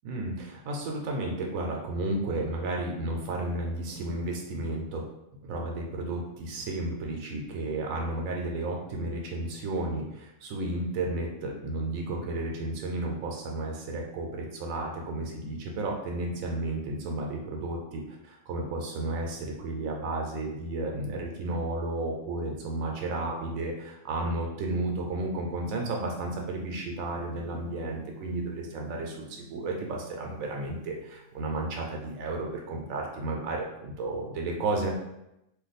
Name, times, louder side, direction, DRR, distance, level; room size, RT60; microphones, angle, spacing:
voice 1, 0.0-5.0 5.5-23.7 24.0-34.9, right 2 dB, 85° right, 0 dB, 1.0 m, -32 dB
Gong, 25.9-31.8, right 3 dB, 85° left, 1.1 m, -51 dB
2.6 x 2.3 x 3.9 m, 0.88 s
omnidirectional pair, 1.4 m